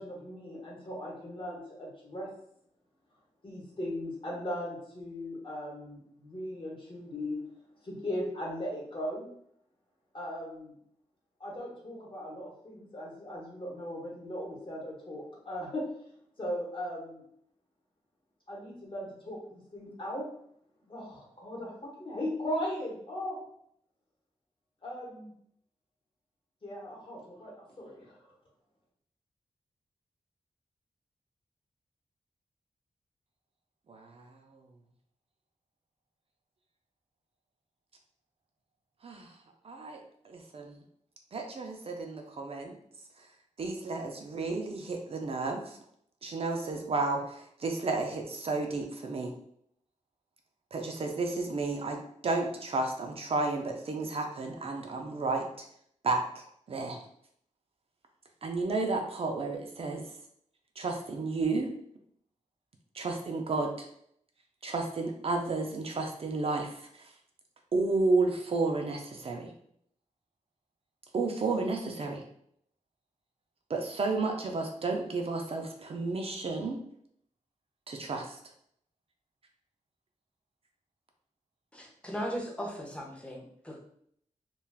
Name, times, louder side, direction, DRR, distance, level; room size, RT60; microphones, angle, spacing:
voice 1, 0.0-2.3 3.4-7.4 7.8-9.3 10.1-10.7 11.4-15.8 16.4-17.2 18.5-20.3 20.9-23.4 24.8-25.3 26.6-28.2, left 1 dB, 40° left, -4 dB, 1.0 m, -38 dB
voice 2, 33.9-34.3 39.0-39.3 39.6-40.8 41.3-42.8 43.6-45.8 46.2-49.3 50.7-52.0 52.2-55.4 56.0-57.0 58.4-60.1 60.8-61.7 62.9-63.9 64.6-67.1 67.7-69.5 71.1-72.2 73.7-76.8 77.9-78.4, right 3 dB, 50° right, 2 dB, 0.4 m, -32 dB
voice 3, 81.7-83.8, equal, 10° left, -1 dB, 0.6 m, -38 dB
2.3 x 2.3 x 3.3 m, 0.69 s
wide cardioid pair, 120°, 13 cm